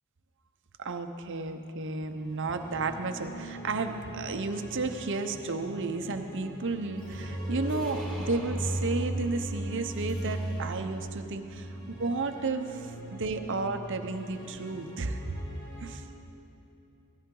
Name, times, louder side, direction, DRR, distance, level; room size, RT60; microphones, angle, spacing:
voice 1, 0.8-11.7 12.0-15.2 15.8-16.0, right 3 dB, 60° right, 7 dB, 0.8 m, -32 dB
sound 1, 2.1-16.0, right 1 dB, 35° left, 3.1 m, -39 dB
sound 2, 7.0-11.0, equal, 5° left, 2.0 m, -43 dB
17.5 x 14.0 x 3.8 m, 2.8 s
head